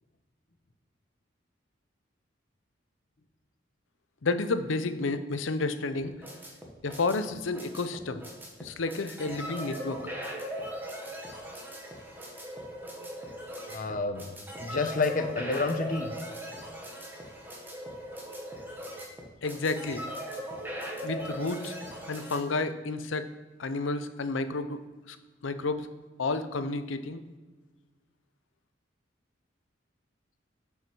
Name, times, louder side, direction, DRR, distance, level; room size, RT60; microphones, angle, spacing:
voice 1, 4.2-6.1 6.8-8.2 8.6-10.0 19.4-20.0 21.0-21.7 22.1-23.3 23.6-24.8 25.1-25.2 25.4-25.9 26.2-27.2, left 3 dB, 85° left, 11 dB, 0.7 m, -31 dB
sound 1, 5.9-22.4, equal, 10° right, 1.4 m, -39 dB
voice 2, 13.7-16.1, left 3 dB, 45° left, 7 dB, 0.8 m, -30 dB
7.5 x 5.6 x 6.1 m, 1.3 s
head